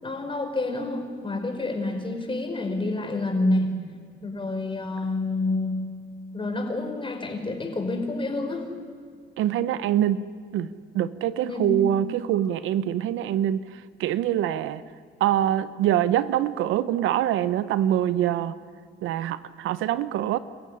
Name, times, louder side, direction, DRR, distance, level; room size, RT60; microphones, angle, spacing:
voice 1, 0.0-3.7 4.2-5.8 6.3-8.7 11.4-11.7, left 2 dB, 25° left, 4 dB, 5.0 m, -28 dB
voice 2, 9.4-10.7 10.9-13.6 14.0-14.8 15.2-18.5 19.0-20.4, right 11 dB, 90° right, 15 dB, 0.8 m, -24 dB
28.0 x 15.0 x 10.0 m, 2.1 s
cardioid pair, 90°, 20 cm